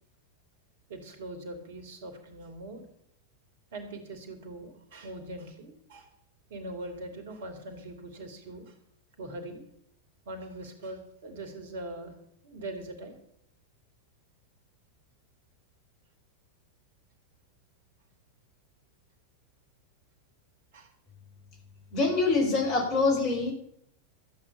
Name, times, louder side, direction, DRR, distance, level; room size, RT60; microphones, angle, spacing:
voice 1, 0.9-2.9 3.7-6.1 6.5-8.7 9.2-9.6 10.3-12.1 12.4-13.2 20.7-20.9, right 1 dB, 55° right, 7 dB, 2.8 m, -41 dB
voice 2, 21.9-23.5, left 3 dB, 40° left, 3 dB, 4.9 m, -25 dB
13.5 x 8.8 x 6.9 m, 0.71 s
figure-of-eight pair, 90°, 0 cm